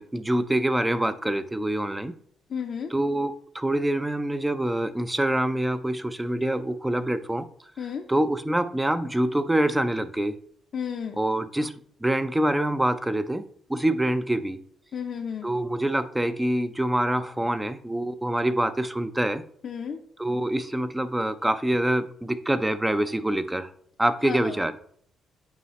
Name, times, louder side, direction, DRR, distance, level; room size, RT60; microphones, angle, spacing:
voice 1, 0.0-2.2 2.9-7.5 8.1-10.4 11.2-13.4 13.7-14.6 15.4-19.4 20.2-23.7 24.0-24.8, right 1 dB, 10° right, 11 dB, 0.5 m, -25 dB
voice 2, 2.5-2.9 7.8-8.1 10.7-11.2 14.9-15.5 19.6-20.0 24.2-24.6, left 7 dB, 55° left, 2 dB, 0.6 m, -33 dB
8.1 x 4.8 x 3.1 m, 0.62 s
cardioid pair, 90°, 0 cm